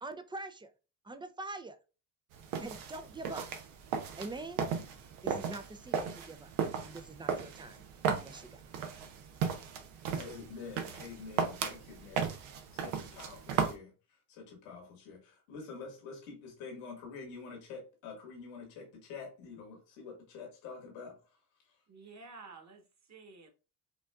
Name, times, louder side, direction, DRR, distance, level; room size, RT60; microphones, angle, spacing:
voice 1, 0.0-0.7 1.0-1.8 2.6-3.5 4.2-4.6 5.2-6.5 6.8-8.6, right 2 dB, 10° right, 0.3 m, -44 dB
sound 1, 2.3-13.7, right 6 dB, 80° right, 0.8 m, -36 dB
voice 2, 10.1-12.4 12.7-13.9 14.3-21.2, left 4 dB, 85° left, 1.8 m, -47 dB
voice 3, 21.9-23.5, right 4 dB, 35° right, 1.3 m, -52 dB
5.1 x 2.5 x 2.3 m
supercardioid pair, 70°, 49 cm